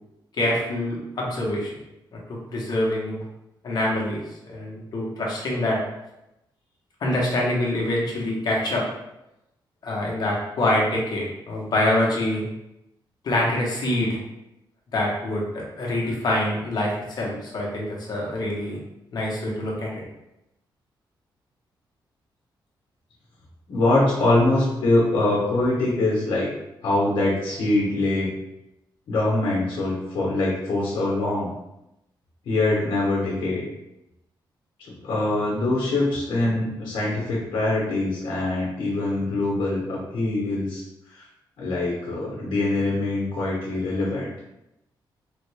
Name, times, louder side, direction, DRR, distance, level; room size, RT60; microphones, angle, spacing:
voice 1, 0.4-1.7 2.1-3.2 3.6-5.8 7.0-8.8 9.8-12.4 13.2-14.2 14.9-18.8 19.1-20.0, left 1 dB, 55° left, -3 dB, 0.9 m, -25 dB
voice 2, 23.7-26.5 26.8-28.3 29.1-31.5 32.4-33.7 34.8-41.2 41.6-44.3, left 2 dB, 80° left, -5 dB, 1.0 m, -23 dB
3.5 x 2.2 x 3.2 m, 0.90 s
wide cardioid pair, 160°, 9 cm